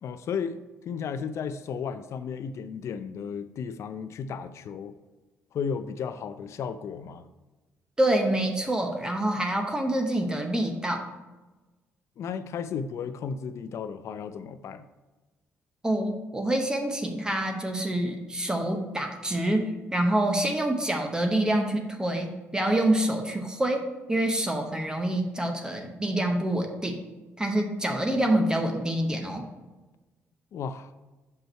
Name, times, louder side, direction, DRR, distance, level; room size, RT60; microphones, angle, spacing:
voice 1, 0.0-4.9 5.5-7.3 12.2-14.8 30.5-30.9, left 6 dB, 60° left, 11 dB, 0.5 m, -34 dB
voice 2, 8.0-11.1 15.8-23.8 24.1-27.0 27.4-29.4, right 1 dB, 15° right, 3 dB, 0.9 m, -26 dB
6.1 x 5.4 x 4.5 m, 1.2 s
cardioid pair, 95°, 5 cm